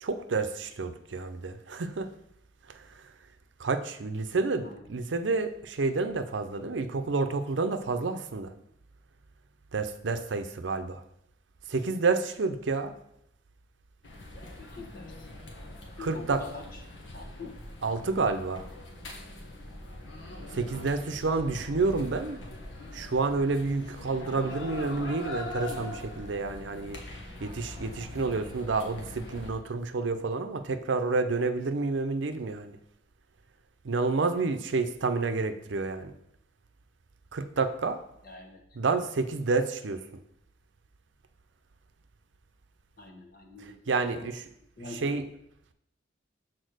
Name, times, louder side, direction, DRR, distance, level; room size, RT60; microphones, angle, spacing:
voice 1, 0.0-2.1 2.7-3.0 3.6-8.5 9.7-11.0 11.7-12.9 16.0-16.4 17.8-18.7 20.5-22.4 22.9-27.0 27.4-32.8 33.8-36.1 37.3-38.0 38.8-40.0 43.6-44.4 44.9-45.2, right 3 dB, 70° right, 9 dB, 0.6 m, -29 dB
sound 1, 14.0-29.5, left 1 dB, 85° left, 1.4 m, -42 dB
voice 2, 14.6-15.3 16.0-16.8 17.1-17.5 38.2-38.6 43.0-43.8 44.0-44.3 44.8-45.2, left 3 dB, 50° left, 2 dB, 1.3 m, -44 dB
6.5 x 4.3 x 6.4 m, 0.77 s
head